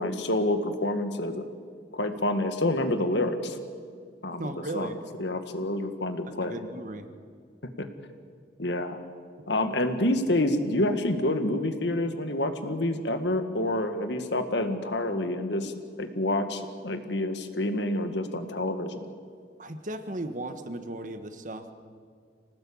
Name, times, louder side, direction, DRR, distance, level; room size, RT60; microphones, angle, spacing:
voice 1, 0.0-1.4 1.9-3.6 4.2-4.9 5.2-6.6 7.8-7.9 8.6-9.0 9.5-15.7 16.0-19.0, left 1 dB, 75° left, 8 dB, 1.8 m, -28 dB
voice 2, 4.4-5.0 6.5-7.1 19.6-21.7, right 1 dB, 45° right, 8 dB, 1.5 m, -36 dB
26.5 x 18.5 x 8.7 m, 2.1 s
head